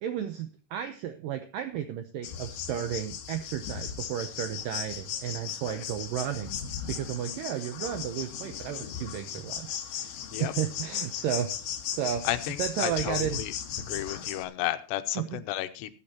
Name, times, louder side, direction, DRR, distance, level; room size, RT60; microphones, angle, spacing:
voice 1, 0.0-6.5 6.9-10.2 10.4-11.5 11.9-12.3 12.6-13.4 15.2-15.4, right 10 dB, 80° right, 8 dB, 1.9 m, -33 dB
sound 1, 2.2-14.4, left 8 dB, 65° left, 2.6 m, -37 dB
voice 2, 10.2-10.5 12.2-13.5 13.9-15.9, left 14 dB, 85° left, 10 dB, 2.9 m, -33 dB
19.5 x 8.6 x 2.8 m, 0.35 s
omnidirectional pair, 4.9 m